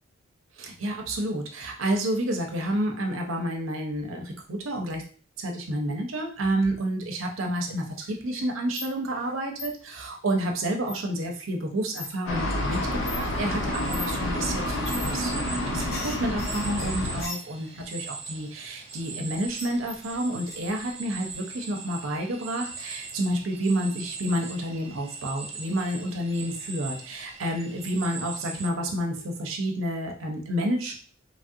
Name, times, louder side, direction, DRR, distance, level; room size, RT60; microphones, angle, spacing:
voice 1, 0.6-5.0 5.4-30.9, right 1 dB, 85° right, 2 dB, 0.7 m, -30 dB
sound 1, 7.2-7.7 8.0-9.3 9.6-9.7 10.8-11.2 11.9-12.1 12.5-12.6 13.0-13.2 13.9-14.1 14.7-15.1 15.4-17.8 19.3-20.2 20.5-20.6, left 3 dB, 50° left, 1.0 m, -39 dB
sound 2, 12.3-17.2, left 1 dB, 70° left, 0.6 m, -29 dB
sound 3, 13.7-28.7, right 4 dB, 30° right, 0.5 m, -41 dB
3.1 x 2.4 x 2.7 m, 0.41 s
head